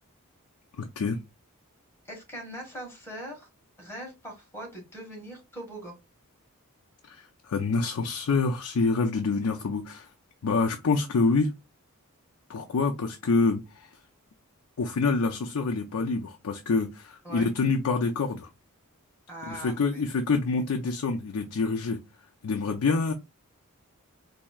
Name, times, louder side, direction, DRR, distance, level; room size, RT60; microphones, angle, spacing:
voice 1, 0.8-1.2 7.1-10.1 10.4-11.5 12.5-13.9 14.8-18.5 19.5-22.0 22.4-23.1, left 4 dB, 80° left, 0.5 m, -26 dB
voice 2, 2.1-3.5 3.8-5.9 17.2-17.5 19.3-20.0, right 1 dB, 10° left, 1.4 m, -41 dB
4.2 x 2.7 x 2.3 m
head